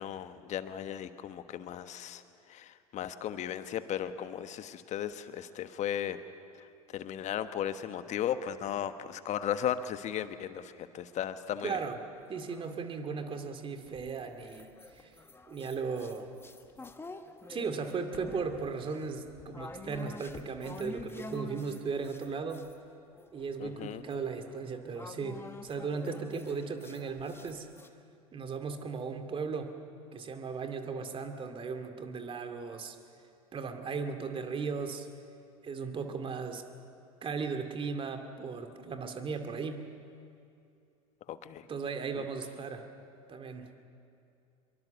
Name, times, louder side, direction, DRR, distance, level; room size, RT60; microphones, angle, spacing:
voice 1, 0.0-2.2 2.5-6.2 6.9-11.8 23.6-24.0 41.3-41.6 42.2-42.3, left 10 dB, 40° left, 11 dB, 1.3 m, -36 dB
voice 2, 11.6-12.0 12.3-15.1 15.5-16.3 17.5-22.7 23.3-27.7 28.3-29.7 30.1-33.0 33.5-35.1 35.6-36.6 37.2-39.8 41.7-42.9 43.3-43.7, right 5 dB, 30° right, 6 dB, 2.4 m, -36 dB
sound 1, 11.9-13.3 13.9-22.8 23.1-27.9, left 3 dB, 10° left, 1.4 m, -48 dB
25.0 x 23.0 x 7.1 m, 2.6 s
figure-of-eight pair, 80°, 19 cm